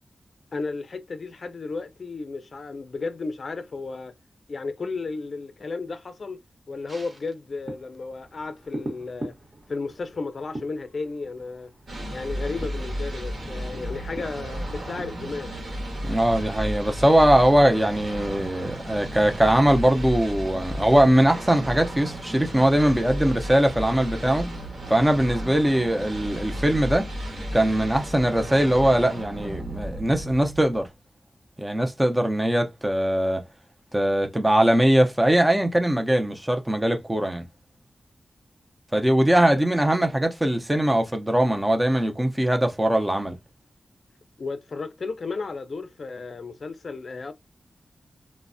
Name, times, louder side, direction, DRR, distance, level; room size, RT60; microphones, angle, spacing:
voice 1, 0.5-4.1 4.5-9.3 9.7-11.7 12.1-15.6 44.4-47.3, left 3 dB, 55° left, 0.4 m, -33 dB
sound 1, 6.9-18.6 18.9-19.0, right 1 dB, 40° right, 0.9 m, -43 dB
sound 2, 11.9-30.9, equal, 75° right, 0.9 m, -34 dB
voice 2, 16.0-24.5 24.9-27.1 27.5-30.9 31.6-33.4 33.9-37.4 38.9-43.3, right 1 dB, 10° right, 0.5 m, -21 dB
3.1 x 2.0 x 2.5 m
wide cardioid pair, 135°, 0 cm